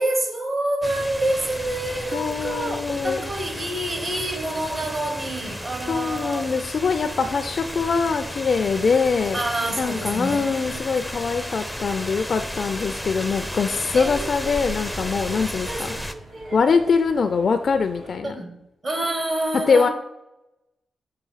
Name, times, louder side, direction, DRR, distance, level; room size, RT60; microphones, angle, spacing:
voice 1, 0.0-6.5 9.3-10.8 13.9-14.3 15.3-15.4 15.7-16.6 18.3-19.9, right 1 dB, 45° right, 5 dB, 1.3 m, -28 dB
sound 1, 0.8-16.1, equal, ahead, 0.5 m, -33 dB
sound 2, 1.2-18.2, right 1 dB, 80° right, 1.8 m, -45 dB
voice 2, 2.1-3.3 5.9-9.4 9.8-15.9 16.5-18.3 19.7-19.9, left 5 dB, 55° left, 7 dB, 0.4 m, -23 dB
6.7 x 2.7 x 5.6 m, 0.89 s
cardioid pair, 65°, 0 cm